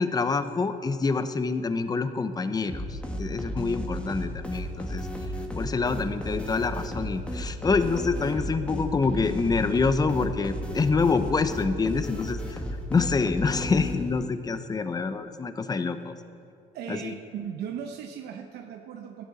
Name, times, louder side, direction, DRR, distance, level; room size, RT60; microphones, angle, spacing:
voice 1, 0.0-5.1 5.6-12.6 12.9-16.1 16.9-17.1, left 4 dB, 25° left, 10 dB, 0.8 m, -26 dB
sound 1, 2.7-14.3, equal, 5° left, 1.8 m, -34 dB
voice 2, 16.7-19.2, right 8 dB, 75° right, 4 dB, 0.9 m, -37 dB
17.5 x 12.0 x 4.2 m, 2.5 s
cardioid pair, 110°, 17 cm